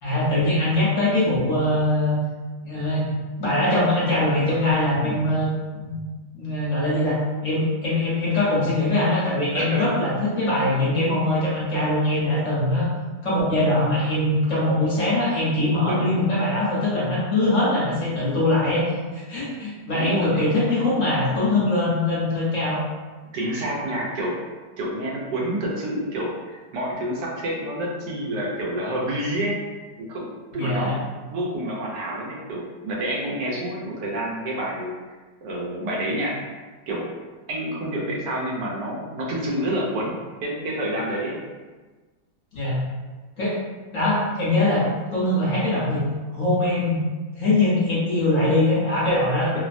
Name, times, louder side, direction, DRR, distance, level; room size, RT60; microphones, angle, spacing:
voice 1, 0.0-2.2 2.6-3.1 3.4-6.0 6.3-12.9 13.2-18.8 19.1-22.8 30.5-30.9 42.5-42.8 43.4-43.6 43.9-46.0 46.3-47.0 47.4-49.6, left 1 dB, 55° left, -8 dB, 1.1 m, -22 dB
voice 2, 9.5-9.9 15.9-16.1 19.9-20.4 23.3-24.3 24.8-29.6 30.0-34.9 35.4-36.3 36.9-37.1 37.5-41.4 49.5-49.6, right 1 dB, 80° right, -3 dB, 1.2 m, -28 dB
3.1 x 2.1 x 2.5 m, 1.3 s
omnidirectional pair, 1.9 m